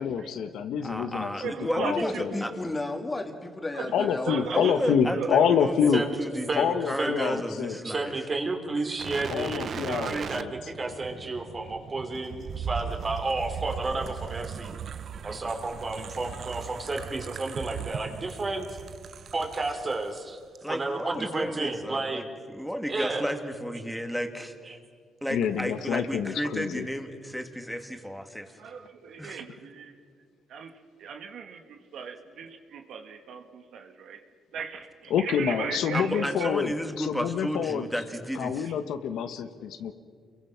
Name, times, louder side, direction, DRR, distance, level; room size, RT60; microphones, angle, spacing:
voice 1, 0.0-2.3 3.9-6.0 6.6-7.8 9.3-10.5 25.3-26.9 35.1-37.9 38.4-39.9, left 7 dB, 80° left, 9 dB, 1.4 m, -27 dB
voice 2, 0.8-2.5 4.5-8.1 20.6-24.7 25.2-28.6 29.2-29.4 35.9-38.7, equal, ahead, 5 dB, 2.3 m, -33 dB
voice 3, 1.4-1.9 2.3-2.5 3.7-5.6 9.5-10.3 28.6-30.0 30.5-30.7 31.0-34.2 34.5-36.5, right 6 dB, 75° right, 5 dB, 2.0 m, -37 dB
voice 4, 1.9-4.7, left 2 dB, 20° left, 5 dB, 2.5 m, -33 dB
voice 5, 7.0-7.4 7.8-14.7 15.2-18.8 19.3-20.4 20.7-22.2 22.9-23.3 24.7-24.8, right 3 dB, 35° right, 4 dB, 3.3 m, -31 dB
sound 1, 9.0-20.2 20.5-20.7, right 7 dB, 55° right, 0.7 m, -38 dB
29.5 x 22.5 x 6.0 m, 2.1 s
cardioid pair, 90°, 0 cm